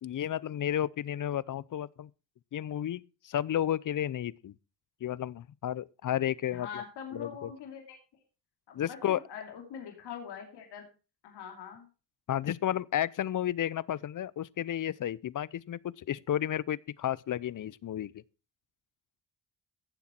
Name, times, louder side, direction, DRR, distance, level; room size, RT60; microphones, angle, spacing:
voice 1, 0.0-2.1 2.5-4.5 5.0-6.7 7.1-7.5 8.7-9.2 12.3-18.2, left 11 dB, 50° left, 0.7 m, -32 dB
voice 2, 6.5-8.2 8.7-10.8 11.2-11.9, left 7 dB, 85° left, 2.7 m, -43 dB
16.0 x 7.2 x 4.4 m
supercardioid pair, 55°, 39 cm